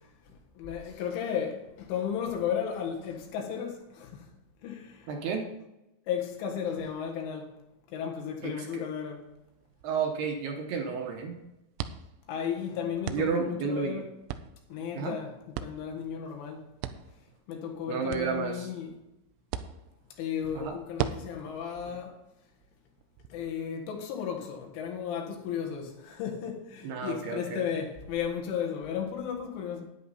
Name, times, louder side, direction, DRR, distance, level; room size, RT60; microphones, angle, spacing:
voice 1, 0.3-4.3 4.6-5.1 6.1-7.5 7.9-9.3 12.3-14.1 14.7-16.7 17.5-18.9 20.1-22.2 23.3-29.8, left 8 dB, 85° left, 4.1 m, -34 dB
voice 2, 5.1-5.5 8.4-8.8 9.8-11.3 13.1-14.0 15.0-15.2 17.9-18.7 20.6-20.7 26.8-27.6, right 5 dB, 70° right, 2.7 m, -31 dB
sound 1, 9.1-23.3, right 10 dB, 90° right, 3.1 m, -42 dB
11.0 x 9.9 x 4.1 m
omnidirectional pair, 5.4 m